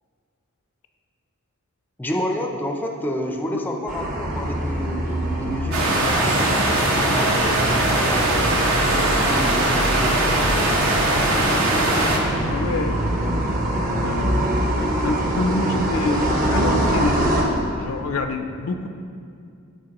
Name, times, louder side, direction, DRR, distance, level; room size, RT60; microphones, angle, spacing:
voice 1, 2.0-8.6 8.8-10.7, equal, 10° left, 2 dB, 0.4 m, -30 dB
sound 1, 3.9-17.4, right 1 dB, 40° right, 1.0 m, -24 dB
sound 2, 5.7-12.2, right 1 dB, 65° right, 1.0 m, -20 dB
voice 2, 12.5-13.0 13.3-13.4 13.9-17.5 17.8-18.9, left 3 dB, 65° left, 7 dB, 0.4 m, -27 dB
12.5 x 4.3 x 2.9 m, 2.4 s
head